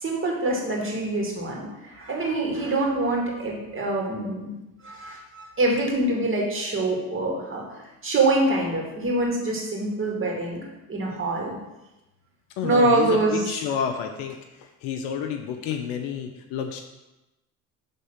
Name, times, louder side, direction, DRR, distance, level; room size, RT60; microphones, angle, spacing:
voice 1, 0.0-4.5 4.8-7.6 8.0-10.6 10.9-11.6 12.6-13.5, right 2 dB, 30° right, -2 dB, 2.3 m, -25 dB
voice 2, 12.6-16.8, left 7 dB, 75° left, 4 dB, 0.7 m, -30 dB
5.5 x 3.6 x 5.6 m, 1.0 s
hypercardioid pair, 65°, 41 cm